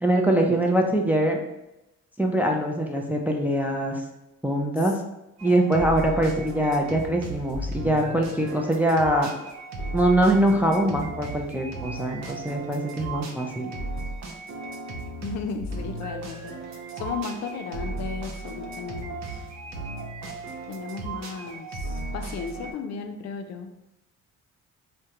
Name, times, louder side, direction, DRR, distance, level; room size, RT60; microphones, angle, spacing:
voice 1, 0.0-1.4 2.2-4.0 4.4-4.9 5.4-9.3 9.9-13.7, right 1 dB, 5° right, 1 dB, 0.3 m, -23 dB
sound 1, 5.4-22.7, right 2 dB, 65° right, 0.6 m, -35 dB
voice 2, 15.2-16.5 17.0-19.4 20.7-23.7, left 5 dB, 60° left, 5 dB, 0.5 m, -35 dB
3.5 x 2.2 x 2.8 m, 0.92 s
cardioid pair, 90°, 30 cm